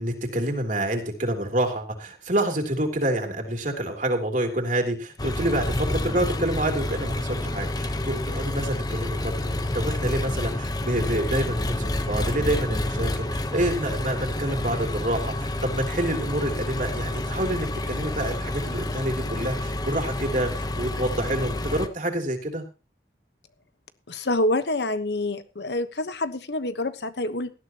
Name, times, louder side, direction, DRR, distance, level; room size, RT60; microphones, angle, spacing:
voice 1, 0.0-22.6, right 1 dB, 45° right, 3 dB, 3.2 m, -28 dB
Engine, 5.2-21.9, left 1 dB, 20° left, 1.0 m, -29 dB
voice 2, 24.1-27.5, left 2 dB, 75° left, 11 dB, 1.2 m, -27 dB
18.5 x 13.0 x 3.0 m, 0.30 s
head